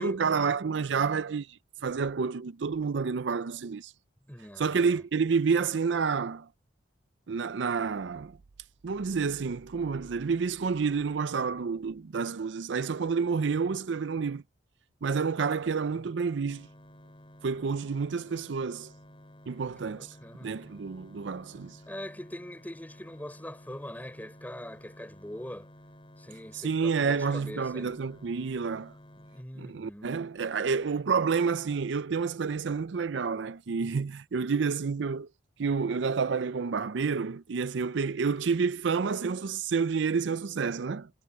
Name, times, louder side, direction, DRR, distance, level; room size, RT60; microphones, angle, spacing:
voice 1, 0.0-3.9 4.6-6.5 7.3-8.4 8.8-14.4 15.0-16.7 17.4-18.9 19.5-20.2 20.4-21.8 26.5-28.9 29.6-35.3 35.6-41.1, right 5 dB, 70° right, 0.5 m, -29 dB
voice 2, 4.3-5.0 19.6-20.5 21.9-25.7 26.2-28.0 29.3-30.1, left 1 dB, 10° left, 4.8 m, -42 dB
sound 1, 16.5-29.4, equal, 30° left, 5.1 m, -53 dB
head